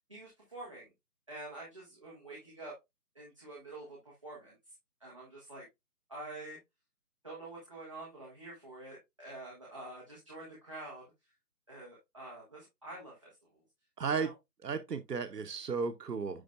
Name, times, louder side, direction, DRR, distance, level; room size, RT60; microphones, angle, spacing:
voice 1, 0.1-0.9 1.3-2.7 3.1-4.7 5.0-5.6 6.1-6.6 7.2-11.0 11.7-13.6 14.1-14.3, right 2 dB, 20° right, 1.5 m, -47 dB
voice 2, 14.0-14.3 14.6-16.4, right 5 dB, 85° right, 0.9 m, -34 dB
10.0 x 4.0 x 2.4 m
figure-of-eight pair, 180°, 47 cm